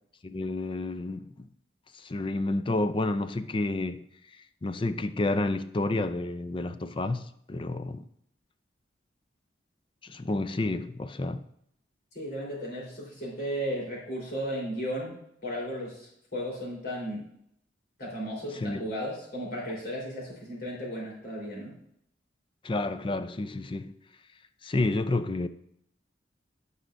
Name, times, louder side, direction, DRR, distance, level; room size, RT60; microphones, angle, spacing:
voice 1, 0.2-1.5 1.9-4.1 4.6-8.0 10.0-11.4 18.5-18.9 22.6-23.9 24.6-25.5, left 2 dB, 30° left, 0.4 m, -30 dB
voice 2, 12.1-15.1 15.4-17.2 18.0-21.7, equal, 60° left, 3.9 m, -35 dB
16.0 x 5.6 x 2.6 m
head